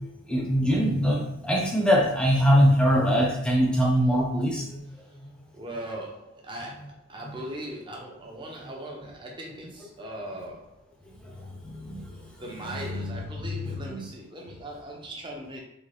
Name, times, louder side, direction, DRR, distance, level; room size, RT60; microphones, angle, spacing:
voice 1, 0.0-4.8 11.2-11.3 11.6-12.2 12.5-13.1 13.4-14.0, equal, 5° left, -2 dB, 0.7 m, -23 dB
voice 2, 5.5-10.8 12.4-15.6, right 1 dB, 25° right, -2 dB, 0.8 m, -39 dB
4.0 x 3.2 x 3.3 m, 0.80 s
head